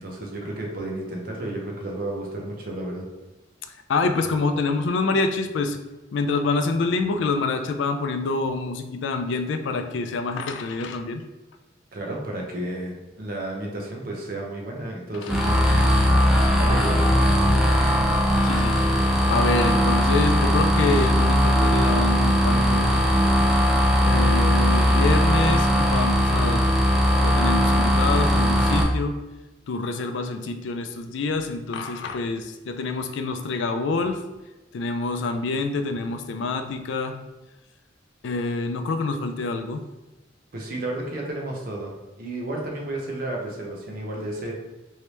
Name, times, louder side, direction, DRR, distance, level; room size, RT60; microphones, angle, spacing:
voice 1, 0.0-3.1 11.9-15.8 16.4-17.1 40.5-41.9 42.2-44.5, right 1 dB, 50° right, -1 dB, 0.7 m, -32 dB
voice 2, 3.9-5.8 6.1-11.2 18.4-18.8 19.3-23.0 24.1-26.7 27.2-29.2 29.7-34.2 34.7-37.1 38.2-39.8, left 3 dB, 75° left, 7 dB, 0.4 m, -26 dB
sound 1, 15.3-28.8, equal, 5° right, 0.4 m, -19 dB
3.2 x 2.7 x 3.0 m, 1.1 s
head